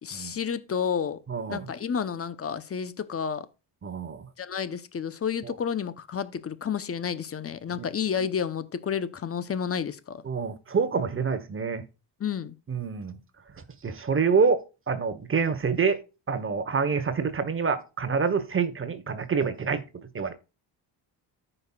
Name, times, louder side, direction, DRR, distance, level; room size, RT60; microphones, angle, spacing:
voice 1, 0.0-1.2 1.5-3.5 4.4-10.2 12.2-12.5, left 7 dB, 35° left, 0.8 m, -30 dB
voice 2, 1.3-1.7 3.8-4.3 5.4-5.5 7.8-7.9 10.2-11.8 12.7-13.2 13.8-16.0 16.3-19.8 20.1-20.3, right 5 dB, 30° right, 1.2 m, -27 dB
14.0 x 5.6 x 2.4 m
cardioid pair, 125°, 43 cm